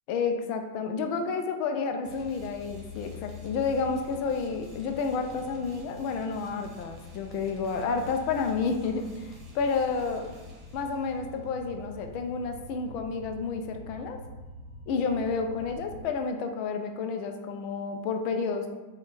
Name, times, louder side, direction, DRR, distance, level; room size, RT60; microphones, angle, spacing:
voice 1, 0.1-10.3 10.7-14.2 14.9-18.7, left 5 dB, 50° left, 5 dB, 0.5 m, -30 dB
sound 1, 2.0-16.1, left 2 dB, 35° right, 1.1 m, -45 dB
3.4 x 2.4 x 4.1 m, 1.2 s
hypercardioid pair, 115°, 0 cm